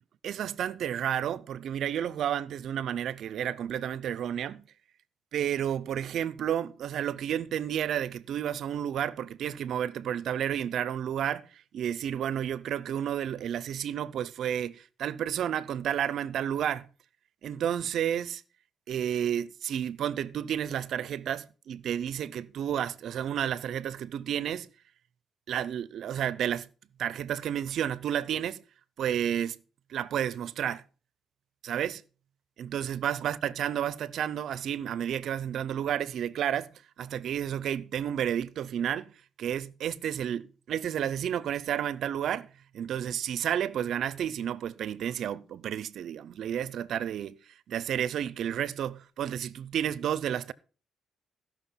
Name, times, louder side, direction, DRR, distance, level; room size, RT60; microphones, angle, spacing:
voice 1, 0.2-4.7 5.3-16.9 17.4-18.4 18.9-24.7 25.5-26.7 27.0-28.6 29.0-29.6 29.9-30.8 31.6-32.0 32.6-36.7 37.0-39.1 39.4-42.5 42.7-47.4 47.7-50.5, right 9 dB, 70° right, 0.6 m, -31 dB
15.0 x 6.1 x 5.7 m
cardioid pair, 90°, 0 cm